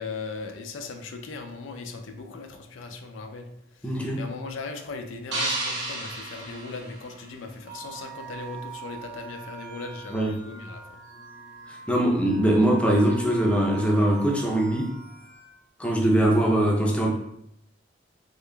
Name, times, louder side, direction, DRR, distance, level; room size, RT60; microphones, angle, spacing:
voice 1, 0.0-3.5 3.8-3.9 4.2-10.8, left 4 dB, 85° left, 4 dB, 0.4 m, -38 dB
voice 2, 3.8-4.2 10.1-10.4 11.7-14.9 15.8-17.1, right 1 dB, 5° left, -1 dB, 0.5 m, -22 dB
sound 1, 5.3-7.6, right 2 dB, 70° right, 1.1 m, -32 dB
sound 2, 7.7-15.6, right 7 dB, 45° right, 0.8 m, -43 dB
3.6 x 3.2 x 2.2 m, 0.76 s
head